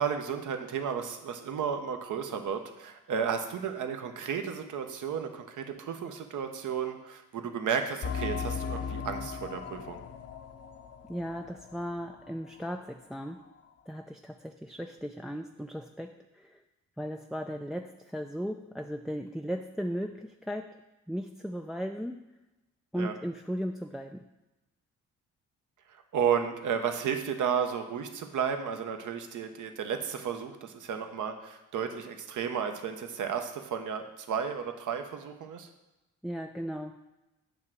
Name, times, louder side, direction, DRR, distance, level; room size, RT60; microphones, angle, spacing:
voice 1, 0.0-10.0 22.9-23.1 25.9-35.7, right 7 dB, 65° right, 6 dB, 0.9 m, -33 dB
sound 1, 8.0-12.3 12.6-12.7 13.3-13.4, left 6 dB, 50° left, 0.7 m, -37 dB
voice 2, 11.1-13.5 13.9-16.6 17.0-20.8 21.1-22.3 22.9-24.3 36.2-37.0, equal, ahead, 4 dB, 0.3 m, -36 dB
8.2 x 3.2 x 6.1 m, 1.0 s
supercardioid pair, 60°, 33 cm